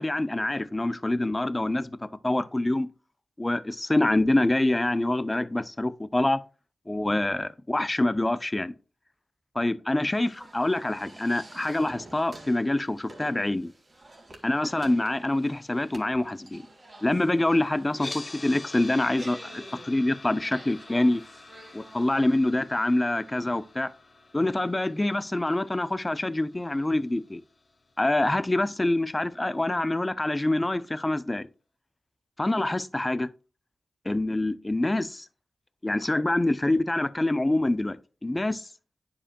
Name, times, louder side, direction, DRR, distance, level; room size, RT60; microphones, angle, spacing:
voice 1, 0.0-2.9 3.4-6.4 6.9-8.7 9.5-13.7 14.4-16.6 17.0-21.2 21.7-23.9 24.3-27.4 28.0-31.5 32.4-33.3 34.1-35.3 35.8-38.0 38.2-38.7, left 1 dB, 25° left, 0.5 m, -26 dB
sound 1, 10.1-22.1, right 1 dB, 40° right, 2.0 m, -49 dB
sound 2, 17.9-28.0, left 3 dB, 45° left, 1.0 m, -46 dB
10.0 x 4.9 x 2.2 m
cardioid pair, 55°, 0 cm